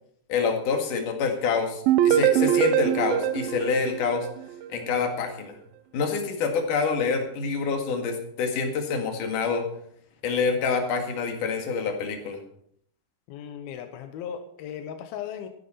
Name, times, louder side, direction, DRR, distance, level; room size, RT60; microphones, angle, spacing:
voice 1, 0.3-4.3 4.7-5.6 5.9-9.6 10.2-12.4, left 5 dB, 65° left, 4 dB, 3.5 m, -27 dB
sound 1, 1.9-4.8, right 10 dB, 80° right, 2.5 m, -23 dB
voice 2, 13.3-15.5, left 8 dB, 90° left, 7 dB, 2.9 m, -37 dB
14.5 x 10.5 x 5.6 m, 0.66 s
omnidirectional pair, 4.2 m